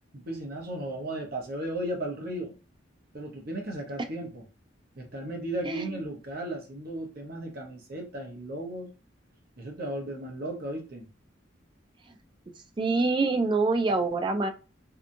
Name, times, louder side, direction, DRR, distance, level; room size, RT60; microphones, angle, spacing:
voice 1, 0.1-2.6 3.1-4.4 4.9-8.9 9.6-11.1, right 1 dB, 50° right, 1 dB, 0.7 m, -35 dB
voice 2, 12.8-14.5, right 3 dB, 25° right, 7 dB, 0.3 m, -25 dB
2.8 x 2.3 x 2.6 m, 0.32 s
head